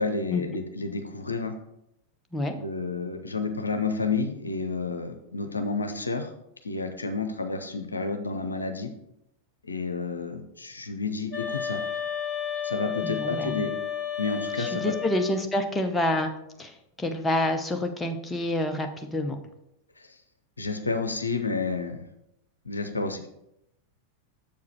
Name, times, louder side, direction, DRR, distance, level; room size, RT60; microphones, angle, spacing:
voice 1, 0.0-1.5 2.5-6.3 6.6-8.9 9.6-11.8 12.6-13.7 14.2-14.9 20.0-20.1 20.6-22.0 22.6-23.2, left 3 dB, 80° left, 7 dB, 0.6 m, -30 dB
sound 1, 11.3-15.5, left 8 dB, 45° left, 1.5 m, -32 dB
voice 2, 13.0-13.6 14.6-16.3 16.6-19.4, left 1 dB, 10° left, 5 dB, 0.7 m, -28 dB
7.0 x 4.8 x 4.6 m, 0.82 s
figure-of-eight pair, 90°, 0 cm